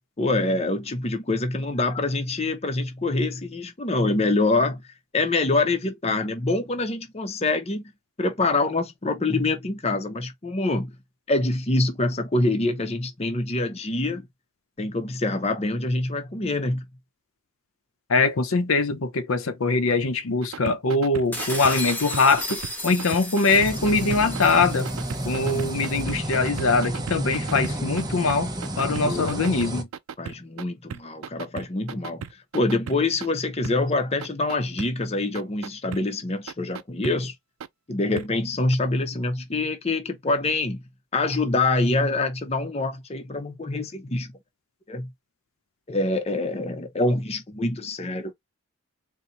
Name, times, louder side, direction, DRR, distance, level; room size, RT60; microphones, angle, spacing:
voice 1, 0.2-4.8 5.1-7.9 8.2-10.9 11.3-14.2 14.8-16.8 29.1-29.4 30.2-32.3 32.5-37.3 37.9-40.8 41.1-44.3 44.9-45.1 45.9-48.3, left 2 dB, 30° left, 0.7 m, -25 dB
voice 2, 18.1-24.9 25.3-29.9, left 3 dB, 75° left, 0.7 m, -22 dB
sound 1, 20.4-28.0 28.3-30.6 30.9-33.3 33.6-33.7 34.2-34.9 35.3-36.0 36.5-37.1 37.6-37.7 38.2-38.3 38.7-38.8, right 7 dB, 75° right, 0.4 m, -36 dB
sound 2, 21.3-26.0, left 1 dB, 10° left, 1.0 m, -35 dB
sound 3, 23.5-29.8, right 1 dB, 20° right, 0.7 m, -30 dB
4.4 x 2.2 x 3.8 m
head